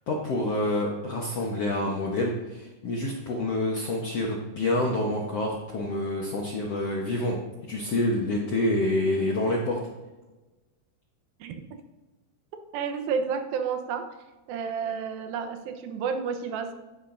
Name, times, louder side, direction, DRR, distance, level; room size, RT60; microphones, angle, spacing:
voice 1, 0.1-7.4 7.6-9.8, left 1 dB, 75° left, -1 dB, 1.4 m, -27 dB
voice 2, 12.7-14.0 14.5-16.7, right 6 dB, 75° right, 6 dB, 2.6 m, -30 dB
15.0 x 10.0 x 2.6 m, 1.1 s
omnidirectional pair, 4.5 m